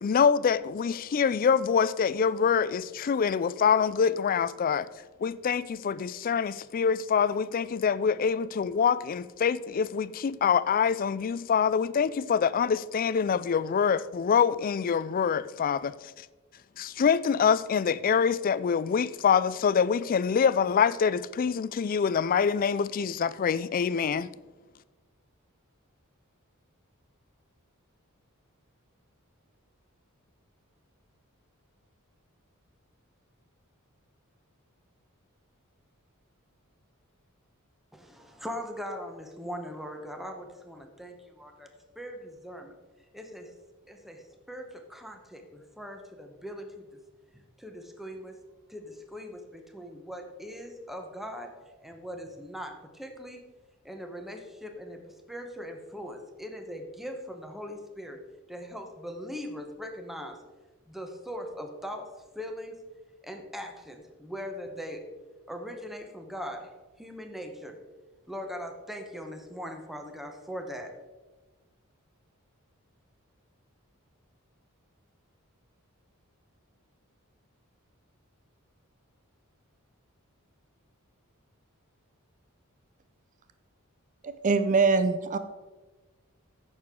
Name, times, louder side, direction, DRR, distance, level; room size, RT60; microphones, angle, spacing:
voice 1, 0.0-4.9 5.2-16.0 16.8-24.3, left 6 dB, 40° left, 0.3 m, -25 dB
voice 2, 37.9-41.7 41.9-42.7 43.1-43.5 43.9-47.0 47.6-48.4 48.7-51.5 51.8-53.4 53.8-58.2 58.5-60.4 60.9-62.8 63.2-65.1 65.5-66.7 67.0-67.8 68.3-70.9, equal, ahead, 0.9 m, -40 dB
voice 3, 84.2-85.4, right 4 dB, 35° right, 0.5 m, -23 dB
14.5 x 6.6 x 3.7 m
head